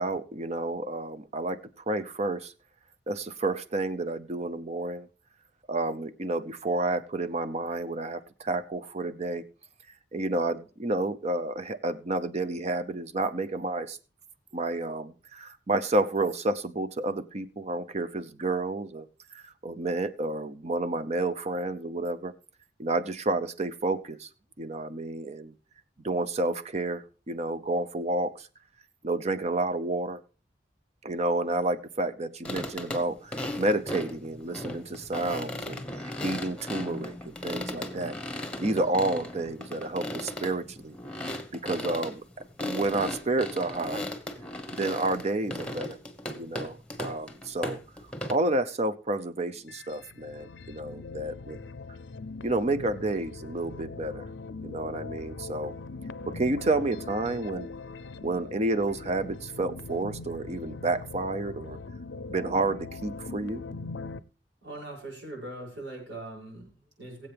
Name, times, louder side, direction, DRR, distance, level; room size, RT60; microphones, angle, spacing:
voice 1, 0.0-1.6 1.9-2.5 3.1-5.1 5.7-9.4 10.1-14.0 14.5-22.3 22.8-24.3 24.6-25.5 26.0-28.5 29.0-30.2 31.0-35.8 36.2-38.2 38.6-41.0 41.5-42.2 42.6-44.0 44.7-46.0 46.4-47.8 48.3-51.6 52.4-54.3 54.6-55.7 56.3-57.7 58.2-61.8 62.3-63.6, right 2 dB, 40° right, 11 dB, 0.7 m, -30 dB
sound 1, 32.4-48.3, left 1 dB, 5° left, 1.2 m, -37 dB
sound 2, 49.5-64.2, left 3 dB, 90° left, 0.6 m, -41 dB
voice 2, 64.6-67.3, right 2 dB, 85° right, -2 dB, 6.5 m, -41 dB
22.0 x 7.9 x 3.4 m, 0.38 s
head